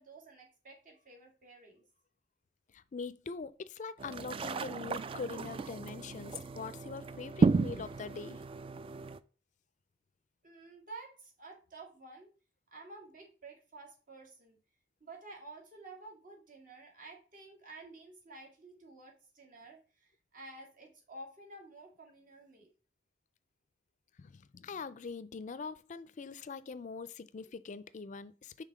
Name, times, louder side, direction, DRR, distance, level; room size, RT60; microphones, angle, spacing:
voice 1, 0.0-1.8 10.4-12.3 12.7-14.6 15.0-22.7, right 2 dB, 50° right, 2.0 m, -51 dB
voice 2, 2.7-8.4 24.2-28.6, left 4 dB, 45° left, 0.4 m, -43 dB
sound 1, 4.0-9.2, right 4 dB, 30° right, 0.3 m, -33 dB
5.6 x 3.5 x 4.9 m
head